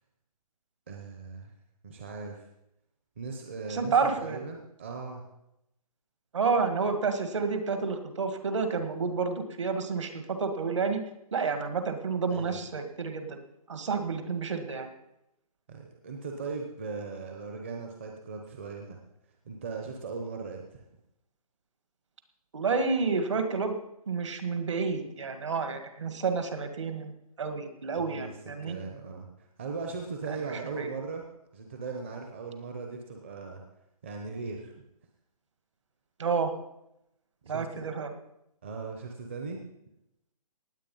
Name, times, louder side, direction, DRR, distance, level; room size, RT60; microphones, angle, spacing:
voice 1, 0.9-1.5 1.8-2.5 3.2-5.2 12.3-12.6 15.7-19.0 19.5-20.8 28.0-28.3 28.6-31.3 31.5-33.6 34.0-34.7 37.4-37.7 38.6-39.6, right 4 dB, 20° right, 2 dB, 0.8 m, -38 dB
voice 2, 3.7-4.4 6.3-11.0 11.3-13.4 13.7-14.9 22.5-23.7 24.1-27.1 27.4-28.8 30.5-30.9 36.2-36.5 37.5-38.1, right 5 dB, 50° right, 7 dB, 1.9 m, -30 dB
18.5 x 8.2 x 5.5 m, 0.84 s
hypercardioid pair, 175°, 20 cm